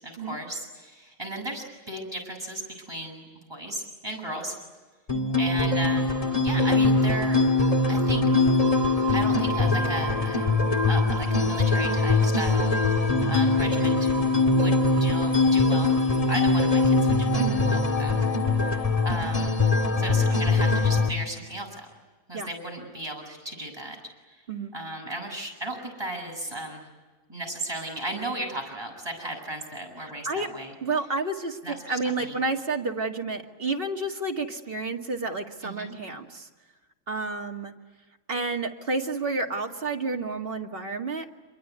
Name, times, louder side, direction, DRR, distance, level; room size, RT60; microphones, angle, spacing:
voice 1, 0.0-4.5 5.4-6.1 6.4-7.4 7.8-8.2 9.1-10.5 10.9-14.1 14.5-15.9 16.3-18.3 18.6-19.5 20.0-21.9 22.3-24.0 24.7-26.9 27.3-30.7 31.6-32.3 35.6-36.0, right 1 dB, 15° right, 0 dB, 7.5 m, -35 dB
sound 1, 5.1-21.1, left 3 dB, 25° left, 1.9 m, -22 dB
voice 2, 30.0-30.5 30.8-36.5 37.1-37.7 38.3-41.3, right 3 dB, 35° right, 2 dB, 2.2 m, -30 dB
27.5 x 23.0 x 9.6 m, 1.3 s
omnidirectional pair, 1.6 m